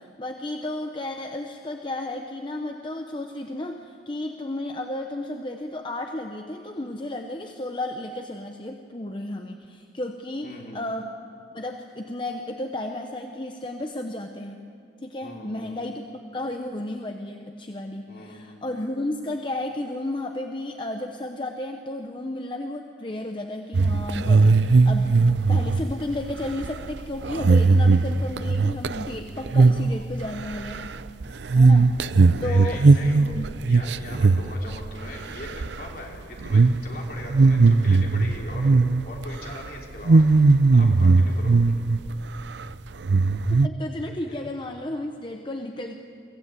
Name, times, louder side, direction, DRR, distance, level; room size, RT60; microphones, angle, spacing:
voice 1, 0.0-11.1 11.5-14.6 15.0-16.0 16.3-25.1 25.5-30.9 31.5-32.0 32.4-33.5 43.6-46.0, left 1 dB, 25° left, 4 dB, 0.9 m, -33 dB
voice 2, 10.4-10.8 15.2-15.7 18.1-18.6 31.2-31.8 32.2-33.2 33.7-40.2 40.7-41.6, left 2 dB, 55° left, -1 dB, 3.5 m, -41 dB
sound 1, 23.7-29.2 29.5-29.9 30.2-35.1 35.4-35.9 36.4-36.8 37.2-39.2 39.5-39.7 40.1-42.1 42.4-42.5 43.0-43.7, right 3 dB, 75° right, 0.5 m, -18 dB
24.0 x 16.0 x 8.2 m, 2.4 s
head